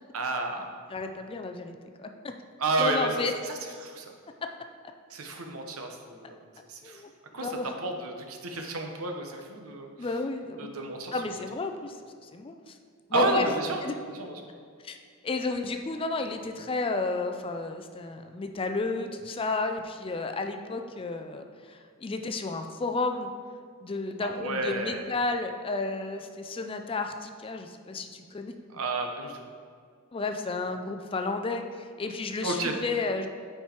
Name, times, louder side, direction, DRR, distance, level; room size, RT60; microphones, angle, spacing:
voice 1, 0.1-0.6 2.6-3.1 3.4-3.5 3.8-4.1 5.1-6.4 6.7-7.0 7.3-7.5 7.8-9.9 10.6-11.3 13.1-13.8 14.1-14.4 24.2-25.1 28.7-29.4 32.4-32.7, right 2 dB, 80° right, 4 dB, 0.9 m, -31 dB
voice 2, 0.9-2.1 2.8-3.3 6.8-7.1 7.4-7.7 10.0-10.7 11.1-12.0 12.3-12.7 13.1-13.5 13.8-13.9 14.8-15.0 15.2-23.3 23.8-28.5 30.1-33.3, left 3 dB, 25° left, 5 dB, 0.4 m, -32 dB
9.0 x 4.6 x 4.4 m, 2.1 s
head